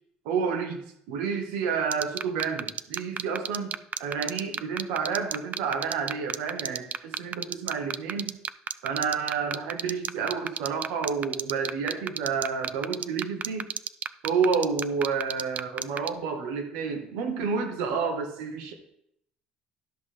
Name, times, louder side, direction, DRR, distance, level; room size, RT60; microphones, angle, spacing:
voice 1, 0.2-3.7 4.0-8.3 8.8-13.7 14.2-18.7, right 5 dB, 85° right, 5 dB, 1.3 m, -30 dB
sound 1, 1.9-16.1, right 8 dB, 45° right, 0.3 m, -29 dB
12.0 x 5.8 x 3.4 m, 0.75 s
supercardioid pair, 85°, 4 cm